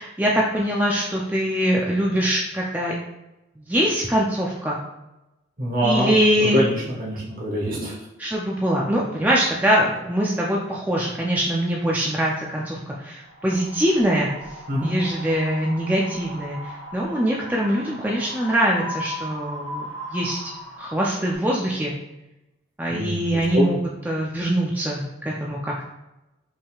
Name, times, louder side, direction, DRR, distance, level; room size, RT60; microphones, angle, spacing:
voice 1, 0.0-2.9 3.6-4.8 5.8-6.6 8.2-14.3 14.8-20.5 20.8-21.9 22.8-23.8 24.1-25.8, equal, 10° right, -3 dB, 0.4 m, -23 dB
voice 2, 5.6-8.0 14.7-14.9 22.9-23.8, equal, 50° right, -4 dB, 1.4 m, -24 dB
Wind, 13.2-21.3, equal, 65° right, 1.1 m, -38 dB
5.3 x 3.5 x 2.3 m, 0.97 s
head